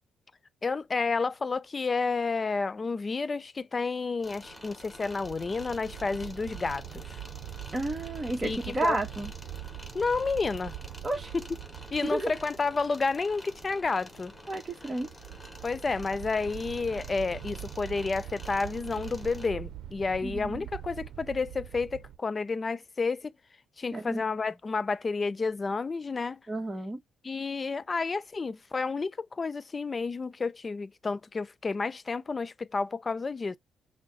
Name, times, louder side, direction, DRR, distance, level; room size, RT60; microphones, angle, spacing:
voice 1, 0.6-7.2 8.4-9.0 9.9-10.7 11.3-11.5 11.9-14.3 15.6-23.3 23.8-26.4 27.2-33.6, left 4 dB, 30° left, 0.5 m, -30 dB
sound 1, 4.2-19.5, left 1 dB, 10° left, 1.4 m, -49 dB
sound 2, 4.3-22.2, right 13 dB, 75° right, 0.7 m, -43 dB
voice 2, 7.7-9.3 11.0-11.3 12.1-12.3 14.5-15.1 20.2-20.6 23.9-24.2 26.5-27.0, right 2 dB, 20° right, 1.3 m, -31 dB
6.1 x 2.2 x 4.0 m
cardioid pair, 90°, 0 cm